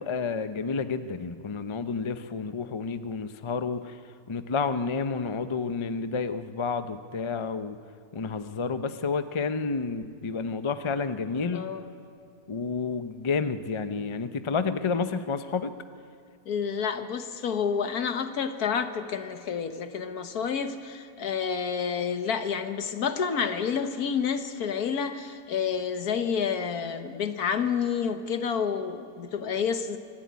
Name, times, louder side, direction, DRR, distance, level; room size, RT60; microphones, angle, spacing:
voice 1, 0.0-4.0 4.3-7.8 8.1-11.7 12.5-15.7, left 5 dB, 50° left, 10 dB, 0.3 m, -30 dB
voice 2, 11.5-11.9 16.4-30.0, left 6 dB, 65° left, 8 dB, 1.6 m, -29 dB
25.0 x 12.5 x 9.5 m, 2.2 s
omnidirectional pair, 1.7 m